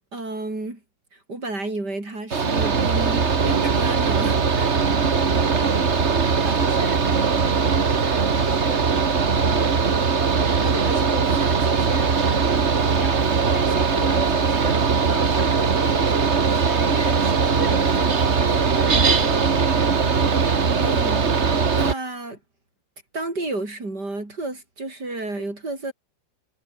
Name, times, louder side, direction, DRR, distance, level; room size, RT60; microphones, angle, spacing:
voice 1, 0.1-0.8 1.1-4.8 20.7-22.4 23.1-25.9, right 2 dB, 65° right, 6.7 m, -31 dB
Mechanical fan, 2.3-21.9, right 5 dB, 40° right, 1.8 m, -20 dB
voice 2, 5.3-7.1 7.4-8.9 9.2-9.8 10.6-20.2, left 1 dB, 40° left, 8.5 m, -37 dB
omnidirectional pair, 2.0 m